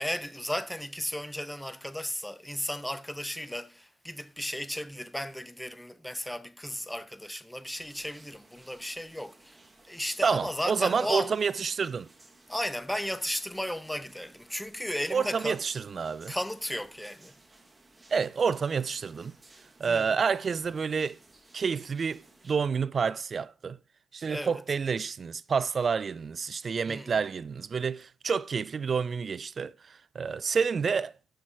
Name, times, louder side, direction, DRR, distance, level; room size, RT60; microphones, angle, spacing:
voice 1, 0.0-9.6 9.8-11.3 12.5-15.6 16.3-17.3 19.9-20.1 24.3-24.6 26.9-27.1, equal, 5° left, 0.5 m, -35 dB
sound 1, 7.7-22.5, right 2 dB, 20° right, 1.2 m, -57 dB
voice 2, 10.2-12.1 15.1-16.3 18.1-19.3 19.8-21.2 21.5-23.8 24.1-31.4, right 5 dB, 40° right, 0.3 m, -29 dB
6.3 x 5.7 x 4.5 m
cardioid pair, 90°, 0 cm